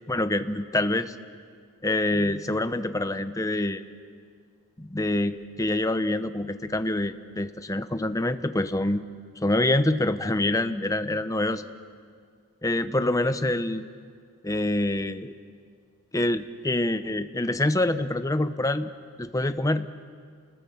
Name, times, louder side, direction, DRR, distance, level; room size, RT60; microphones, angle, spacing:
voice 1, 0.1-1.1 1.8-3.8 4.8-9.0 9.4-11.7 12.6-13.8 14.4-15.3 16.1-18.9 19.2-19.9, left 1 dB, 15° left, 10 dB, 0.8 m, -26 dB
29.0 x 20.5 x 7.2 m, 2.1 s
head